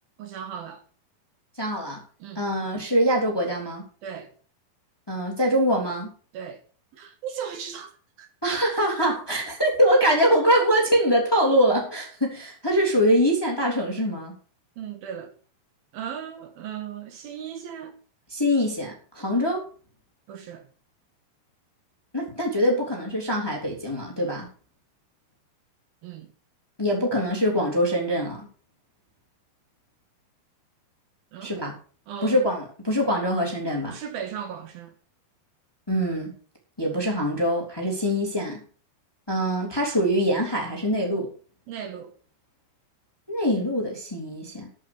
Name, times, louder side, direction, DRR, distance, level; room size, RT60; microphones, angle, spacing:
voice 1, 0.2-0.8 2.2-2.5 4.0-4.3 6.3-6.6 6.9-7.9 8.2-8.3 14.8-15.3 15.9-18.0 20.3-20.7 26.0-26.3 31.3-31.6 32.1-32.4 33.8-34.9 41.7-42.1, right 8 dB, 70° right, 3.1 m, -37 dB
voice 2, 1.6-2.0 2.3-3.8 5.1-6.1 8.4-14.3 18.3-19.6 22.1-24.5 26.8-28.4 31.4-31.7 32.2-34.0 35.9-36.3 36.8-38.6 39.3-41.3 43.3-44.7, equal, 5° left, 2.5 m, -23 dB
12.5 x 7.3 x 6.8 m
omnidirectional pair, 4.6 m